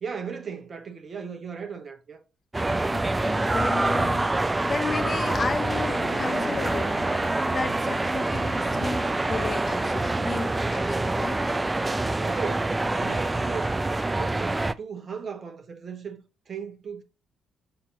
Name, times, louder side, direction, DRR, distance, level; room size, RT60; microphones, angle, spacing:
voice 1, 0.0-2.2 12.1-17.0, right 6 dB, 50° right, 1.0 m, -37 dB
sound 1, 2.5-14.7, right 2 dB, 20° right, 0.4 m, -26 dB
voice 2, 2.9-4.3 4.6-6.9 7.4-11.4, left 4 dB, 40° left, 1.0 m, -33 dB
Motorcycle, 4.8-12.8, left 4 dB, 70° left, 1.0 m, -45 dB
6.6 x 2.9 x 5.8 m
hypercardioid pair, 45°, 0 cm